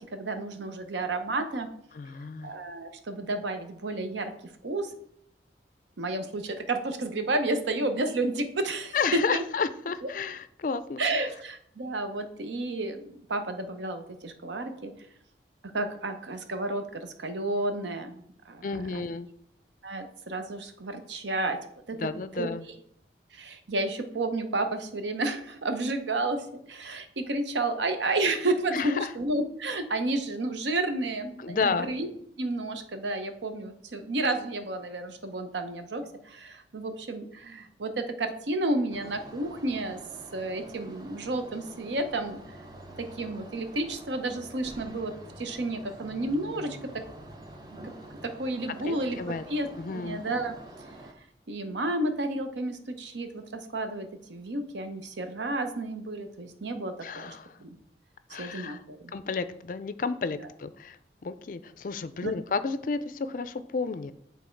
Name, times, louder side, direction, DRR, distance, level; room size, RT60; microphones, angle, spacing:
voice 1, 0.1-1.7 2.4-4.3 4.6-4.9 6.0-9.4 11.0-14.9 15.7-19.1 19.8-21.6 21.9-22.1 22.4-22.5 23.3-32.1 32.4-40.0 40.3-42.4 43.0-47.0 48.2-49.2 49.5-49.7 50.0-50.5 51.5-57.8 58.4-59.1 62.2-62.3, right 2 dB, 85° right, 7 dB, 0.8 m, -31 dB
voice 2, 1.9-2.5 8.9-11.2 18.6-19.3 22.0-22.7 28.7-29.1 31.4-31.9 48.9-49.4 49.8-50.2 57.0-57.5 58.3-58.8 59.1-61.0 61.2-64.1, left 4 dB, 45° left, 13 dB, 0.3 m, -31 dB
sound 1, 38.9-51.1, right 1 dB, 20° right, 0.7 m, -47 dB
8.4 x 3.5 x 4.5 m, 0.70 s
head